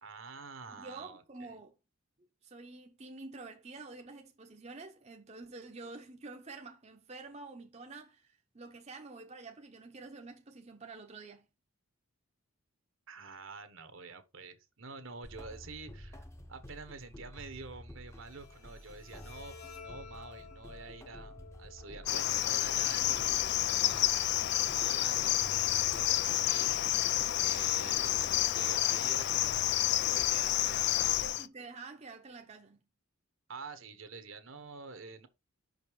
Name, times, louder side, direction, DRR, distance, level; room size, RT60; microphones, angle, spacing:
voice 1, 0.0-1.6 13.1-19.5 19.8-24.3 24.8-26.7 27.2-29.5 30.1-31.3 33.5-35.3, right 4 dB, 65° right, 1.1 m, -48 dB
voice 2, 0.7-1.7 2.4-11.5 31.2-32.8, right 3 dB, 30° right, 0.8 m, -48 dB
sound 1, 15.2-31.3, equal, 15° left, 0.8 m, -50 dB
Bowed string instrument, 18.1-25.1, left 6 dB, 90° left, 2.0 m, -54 dB
Cricket, 22.1-31.5, left 13 dB, 50° left, 0.3 m, -29 dB
5.8 x 5.3 x 4.6 m
head